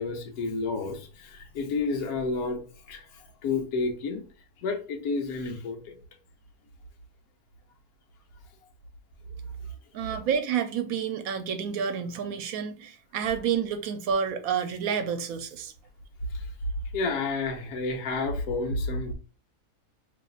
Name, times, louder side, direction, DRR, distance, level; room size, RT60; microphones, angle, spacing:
voice 1, 0.0-2.6 2.9-3.0 3.4-4.2 4.6-6.0 16.3-16.4 16.9-19.1, left 3 dB, 75° left, 1.2 m, -30 dB
voice 2, 9.9-15.7, right 7 dB, 75° right, 1.0 m, -29 dB
5.2 x 3.0 x 2.4 m
omnidirectional pair, 1.6 m